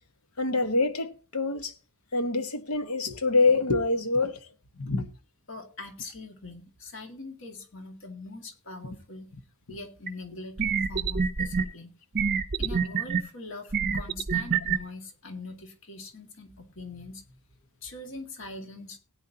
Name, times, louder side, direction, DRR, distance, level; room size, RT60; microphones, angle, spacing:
voice 1, 0.4-1.7 2.1-4.4 4.8-5.1, left 3 dB, 80° left, 1.2 m, -25 dB
voice 2, 5.5-9.3 9.7-11.9 12.6-17.4 17.8-19.0, left 2 dB, 60° left, 2.0 m, -42 dB
sound 1, 10.1-10.2 10.6-11.6 12.1-13.2 13.7-14.8, right 6 dB, 40° right, 0.6 m, -26 dB
17.0 x 9.6 x 2.8 m
head